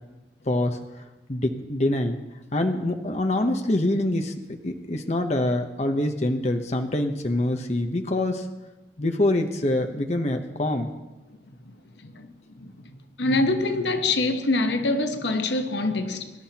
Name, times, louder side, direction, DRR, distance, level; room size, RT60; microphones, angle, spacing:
voice 1, 0.5-1.0 1.3-2.2 2.5-8.5 9.0-10.9, left 1 dB, 40° left, 0.9 m, -25 dB
voice 2, 12.0-12.7 13.2-16.3, left 2 dB, 80° left, 1.1 m, -25 dB
23.5 x 12.0 x 2.9 m
head